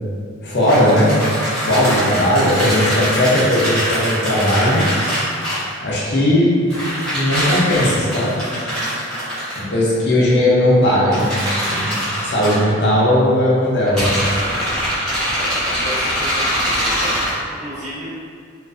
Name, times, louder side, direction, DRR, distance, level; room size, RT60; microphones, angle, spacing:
voice 1, 0.4-1.1 1.6-4.8 5.8-6.6 7.1-8.4 9.6-11.3 11.6-14.2, left 1 dB, 50° left, -6 dB, 0.5 m, -17 dB
sound 1, 0.6-5.7 6.7-9.6 11.1-12.5 13.9-17.3, equal, 5° left, 0.7 m, -22 dB
voice 2, 8.7-9.0 15.3-18.1, equal, 35° right, -9 dB, 0.6 m, -33 dB
2.4 x 2.4 x 2.4 m, 2.3 s
head